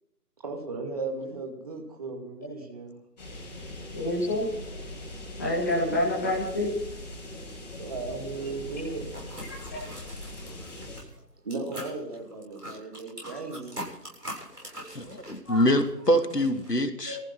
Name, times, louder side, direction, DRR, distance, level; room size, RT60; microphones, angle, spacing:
voice 1, 0.4-3.0 7.8-9.5 11.4-13.8, right 3 dB, 25° right, 2 dB, 2.4 m, -36 dB
sound 1, 3.2-11.0, left 1 dB, 25° left, 6.7 m, -41 dB
voice 2, 3.9-4.5 5.4-6.7 9.4-9.8 10.4-10.5 14.8-14.9 15.4-15.6 17.1-17.2, left 1 dB, 10° left, -5 dB, 1.4 m, -28 dB
sound 2, 9.1-11.2 11.5-16.7, equal, 75° right, 7.6 m, -43 dB
voice 3, 14.9-17.2, equal, 75° left, 6 dB, 2.8 m, -25 dB
22.0 x 15.0 x 4.1 m, 0.82 s
figure-of-eight pair, 155°, 48 cm